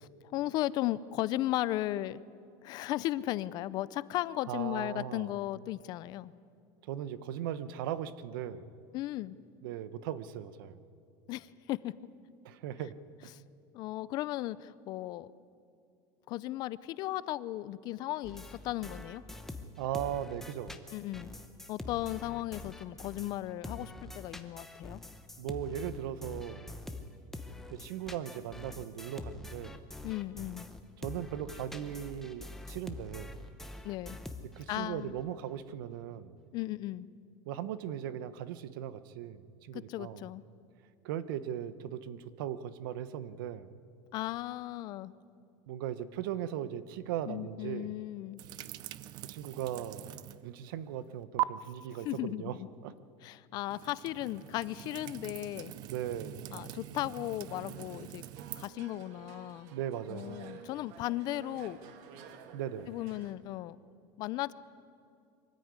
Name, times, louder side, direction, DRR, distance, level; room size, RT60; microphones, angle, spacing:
voice 1, 0.2-2.2 2.6-6.3 8.9-9.4 11.3-11.9 13.7-15.3 16.3-19.2 20.9-21.4 21.7-25.0 30.0-30.7 33.8-34.2 34.7-35.2 36.5-37.1 39.7-40.4 44.1-45.1 47.3-48.4 52.0-52.7 53.2-55.7 56.5-58.2 58.6-59.7 60.1-61.8 62.9-63.8 64.2-64.5, left 15 dB, 40° left, 18 dB, 0.5 m, -36 dB
voice 2, 4.5-5.3 6.9-8.7 9.6-10.8 12.4-12.9 19.8-20.8 25.4-26.7 27.7-29.8 31.0-33.3 34.6-36.4 37.5-40.2 41.0-43.7 45.7-47.9 49.2-50.2 50.4-52.6 52.8-52.9 55.9-56.6 59.7-60.4 62.5-62.9, right 10 dB, 90° right, 14 dB, 1.0 m, -38 dB
sound 1, 18.2-23.4 23.6-34.8, left 2 dB, 5° left, 0.9 m, -45 dB
sound 2, 48.4-50.5 50.8-51.4 53.6-58.7, right 17 dB, 40° right, 0.5 m, -41 dB
sound 3, 57.5-63.3, right 7 dB, 55° right, 1.7 m, -52 dB
24.0 x 14.5 x 9.6 m, 2.5 s
cardioid pair, 170°, 11 cm